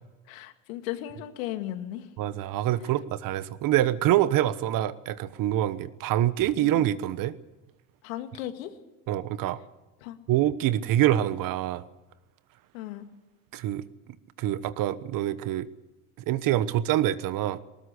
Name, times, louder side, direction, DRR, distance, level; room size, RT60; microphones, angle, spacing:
voice 1, 0.3-2.1 2.8-2.9 6.7-6.9 8.0-8.7 10.0-10.2 12.7-13.1, left 13 dB, 85° left, 7 dB, 2.2 m, -36 dB
voice 2, 2.2-7.3 9.1-9.6 10.3-11.8 13.5-13.8 14.4-15.7 16.3-17.6, right 13 dB, 55° right, 15 dB, 1.2 m, -25 dB
19.5 x 19.0 x 8.3 m, 1.0 s
supercardioid pair, 100°, 40 cm